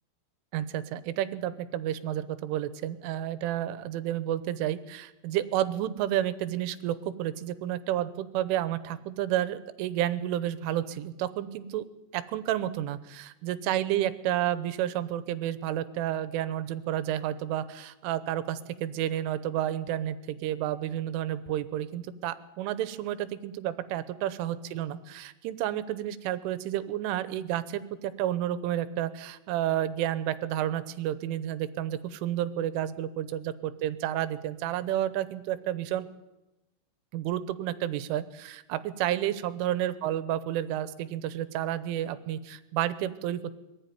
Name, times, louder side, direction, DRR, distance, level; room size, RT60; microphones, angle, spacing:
voice 1, 0.5-11.8 12.1-36.0 37.1-43.5, right 12 dB, 90° right, 14 dB, 3.4 m, -31 dB
22.5 x 15.0 x 9.3 m, 1.0 s
omnidirectional pair, 5.5 m